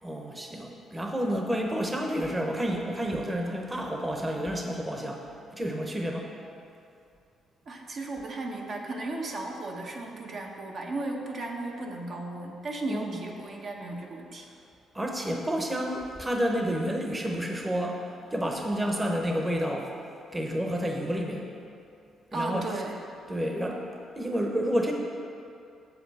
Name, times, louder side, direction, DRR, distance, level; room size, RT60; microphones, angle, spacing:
voice 1, 0.0-5.2 5.5-6.3 12.9-13.2 14.9-18.0 18.3-19.9 20.3-21.5 22.3-22.6 23.3-23.9 24.2-24.9, equal, 15° right, 1 dB, 0.9 m, -30 dB
voice 2, 7.7-14.5 22.3-23.0, right 2 dB, 55° right, 0 dB, 0.9 m, -35 dB
7.4 x 6.9 x 4.2 m, 2.5 s
cardioid pair, 90°, 0 cm